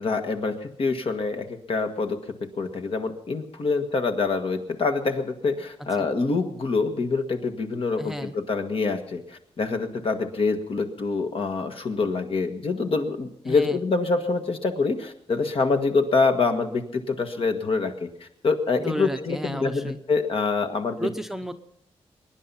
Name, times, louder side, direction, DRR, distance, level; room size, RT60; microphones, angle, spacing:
voice 1, 0.0-2.2 2.6-21.1, left 4 dB, 60° left, 5 dB, 1.6 m, -26 dB
voice 2, 8.0-8.3 13.5-13.8 18.8-20.0 21.0-21.5, right 1 dB, 5° right, 9 dB, 0.7 m, -32 dB
22.5 x 10.5 x 5.6 m, 0.75 s
wide cardioid pair, 130°, 11 cm